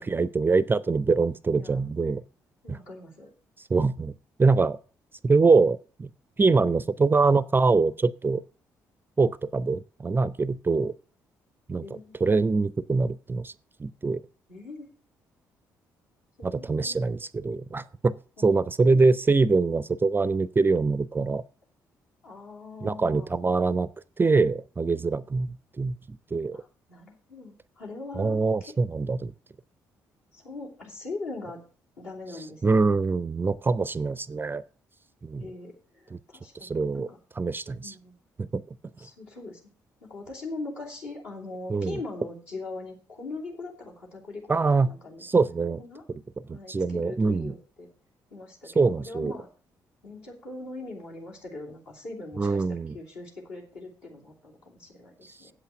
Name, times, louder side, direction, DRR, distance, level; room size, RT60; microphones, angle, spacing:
voice 1, 0.0-2.2 2.7-2.8 3.7-4.1 4.4-4.8 5.2-6.1 6.4-8.4 9.2-10.9 11.7-11.8 12.2-13.5 13.8-14.2 16.4-21.4 22.8-23.9 24.2-26.6 28.1-29.3 32.6-34.6 35.2-35.5 36.1-36.2 36.6-37.1 37.4-37.9 38.4-38.6 41.7-42.0 44.5-44.9 45.2-45.8 46.1-46.2 46.5-47.5 48.8-49.3 52.4-53.0, right 4 dB, 20° right, 0.4 m, -24 dB
voice 2, 2.6-3.3 10.7-10.8 11.8-12.2 14.5-14.9 16.4-17.0 18.4-18.5 18.9-19.0 22.2-23.3 26.5-28.7 30.3-31.6 32.0-32.8 35.4-37.2 37.8-38.2 39.0-39.6 40.0-45.2 45.8-46.0 46.5-47.9 48.3-49.5 50.0-52.6 52.9-55.1 55.4-55.5, left 3 dB, 70° left, 3.1 m, -41 dB
8.2 x 8.0 x 6.1 m
figure-of-eight pair, 40°, 10 cm